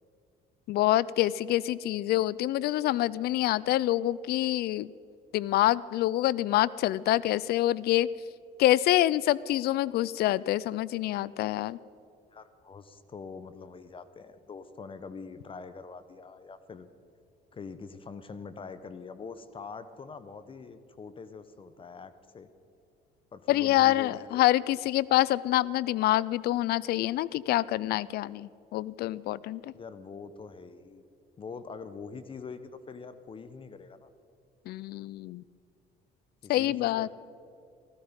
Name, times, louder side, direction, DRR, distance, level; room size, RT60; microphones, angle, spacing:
voice 1, 0.7-4.9 5.3-8.1 8.6-11.8 23.5-29.7 34.7-35.4 36.5-37.1, left 15 dB, 70° left, 21 dB, 0.4 m, -26 dB
voice 2, 12.3-16.9 17.5-22.5 23.3-24.4 29.7-31.0 31.4-34.1 36.4-37.1, left 5 dB, 30° left, 12 dB, 0.8 m, -44 dB
16.0 x 15.5 x 5.2 m, 2.6 s
cardioid pair, 110°, 17 cm